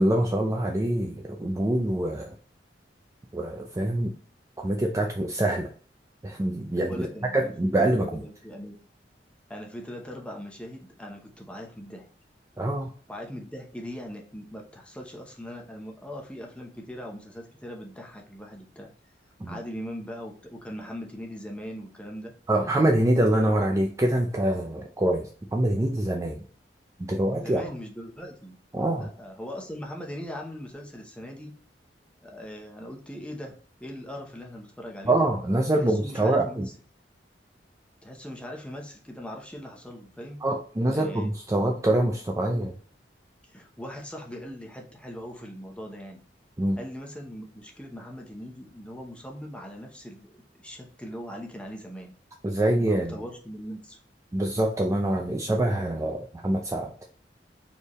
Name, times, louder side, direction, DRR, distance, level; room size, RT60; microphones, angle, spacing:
voice 1, 0.0-2.3 3.3-4.1 4.6-5.7 6.2-7.1 7.3-8.2 12.6-12.9 19.4-19.6 22.5-26.4 27.0-27.6 28.7-29.1 35.0-36.7 40.4-42.7 46.6-46.8 52.4-53.1 54.3-56.9, right 1 dB, 20° right, 2 dB, 0.4 m, -25 dB
voice 2, 6.9-7.5 8.1-8.8 9.5-12.1 13.1-18.9 19.5-22.3 27.4-28.6 29.0-31.5 32.2-35.2 35.7-36.6 38.0-40.4 40.9-41.3 42.5-42.6 43.4-46.2 46.8-52.1 52.8-54.0, equal, 5° left, 1 dB, 0.8 m, -40 dB
4.4 x 3.4 x 3.0 m, 0.42 s
head